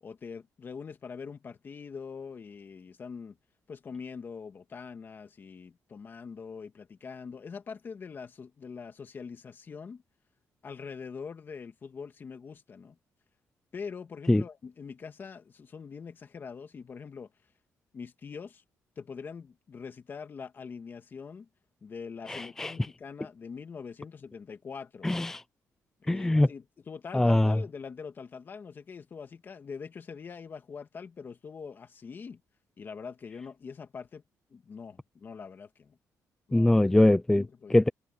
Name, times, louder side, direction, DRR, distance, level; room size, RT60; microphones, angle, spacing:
voice 1, 0.0-3.4 3.7-10.0 10.6-13.0 13.7-17.3 17.9-18.6 19.0-21.5 21.8-25.1 26.0-32.4 32.8-34.2 34.5-36.0 36.5-36.9 37.3-37.8, left 5 dB, 35° left, 2.0 m, -43 dB
voice 2, 22.3-22.7 25.0-25.4 26.1-26.5 27.1-27.6 36.5-37.4 37.7-37.9, left 1 dB, 5° left, 0.5 m, -22 dB
cardioid pair, 145°, 6 cm